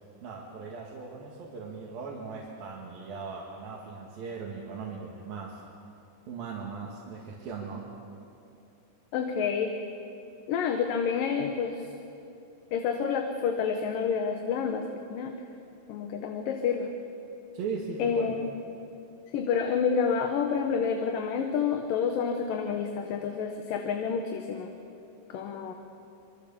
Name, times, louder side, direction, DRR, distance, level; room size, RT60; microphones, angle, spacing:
voice 1, 0.2-5.6 6.3-7.9 17.5-18.3, right 5 dB, 75° right, -3 dB, 3.8 m, -38 dB
voice 2, 9.1-9.7 10.5-11.9 12.7-15.4 15.9-16.9 18.0-18.5 19.3-24.7 25.3-25.7, left 6 dB, 70° left, 4 dB, 2.8 m, -29 dB
26.5 x 23.5 x 7.2 m, 2.7 s
omnidirectional pair, 4.3 m